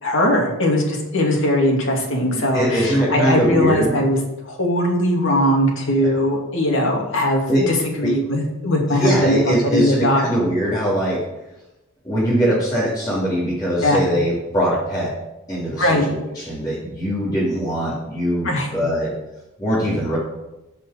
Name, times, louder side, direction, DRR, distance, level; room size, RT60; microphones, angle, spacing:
voice 1, 0.0-4.2 4.5-10.3 13.8-14.0 15.8-16.0 18.4-18.7, left 1 dB, 60° left, 0 dB, 2.6 m, -20 dB
voice 2, 2.3-3.9 6.0-6.1 7.5-7.6 8.0-8.1 8.9-11.2 12.0-15.1 15.5-19.1 19.6-20.2, right 1 dB, 20° left, -10 dB, 3.2 m, -21 dB
15.5 x 5.5 x 5.2 m, 0.97 s
head